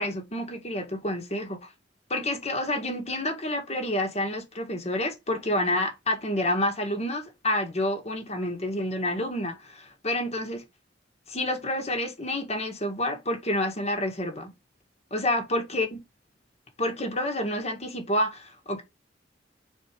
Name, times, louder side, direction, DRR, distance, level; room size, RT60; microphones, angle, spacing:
voice 1, 0.0-1.7 2.1-10.6 11.3-14.5 15.1-16.0 16.8-18.8, left 1 dB, 35° left, 1.8 m, -29 dB
4.7 x 4.5 x 5.2 m
head